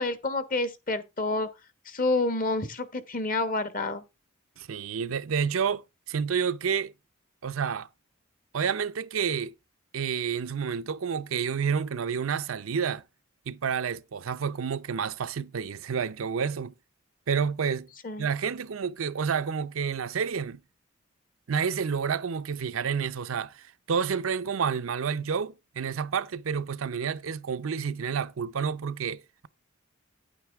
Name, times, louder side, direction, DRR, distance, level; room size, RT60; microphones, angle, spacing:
voice 1, 0.0-1.5 1.9-4.0 18.0-18.3, left 2 dB, 40° left, 1.2 m, -28 dB
voice 2, 4.6-6.9 7.4-7.9 8.5-9.5 9.9-13.0 13.5-16.7 17.3-17.9 18.2-20.6 21.5-29.5, right 6 dB, 70° right, 0.5 m, -29 dB
9.5 x 9.1 x 3.5 m
head